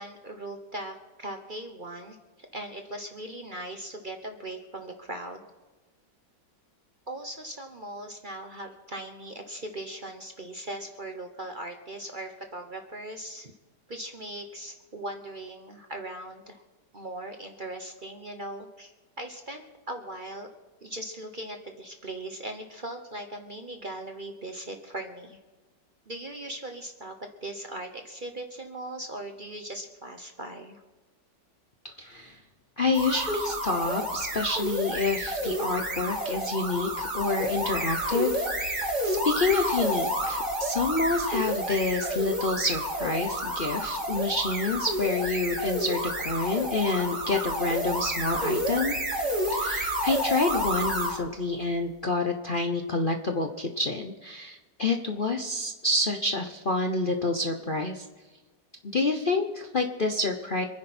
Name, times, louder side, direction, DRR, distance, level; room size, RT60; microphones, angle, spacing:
voice 1, 0.0-5.4 7.1-13.5 13.9-16.6 16.9-18.9 19.2-20.5 20.8-25.4 26.1-30.8, right 1 dB, 35° right, 5 dB, 1.0 m, -39 dB
voice 2, 31.8-32.4 32.8-49.0 49.5-58.1 58.8-60.7, left 3 dB, 40° left, 4 dB, 0.8 m, -28 dB
sound 1, 32.9-51.2, equal, 60° right, 4.2 m, -30 dB
26.5 x 10.0 x 4.4 m, 1.2 s
omnidirectional pair, 1.9 m